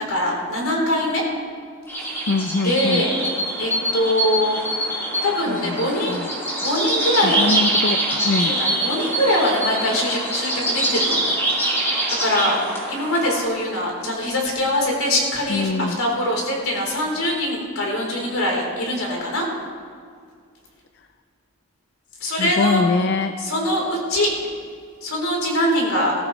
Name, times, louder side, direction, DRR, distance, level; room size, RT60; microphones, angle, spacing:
voice 1, 0.1-1.2 2.6-3.1 3.6-4.6 5.2-6.2 6.6-7.4 8.5-11.3 12.2-12.6 12.9-19.5 22.2-22.8 23.4-24.3 25.0-26.1, left 1 dB, 75° left, -2 dB, 3.7 m, -22 dB
sound 1, 1.9-13.4, right 1 dB, 10° left, 2.3 m, -24 dB
voice 2, 2.3-3.1 5.5-6.3 7.2-8.6 15.5-16.0 22.2-23.3, left 3 dB, 50° left, 8 dB, 0.5 m, -24 dB
20.0 x 13.5 x 3.1 m, 2.1 s
head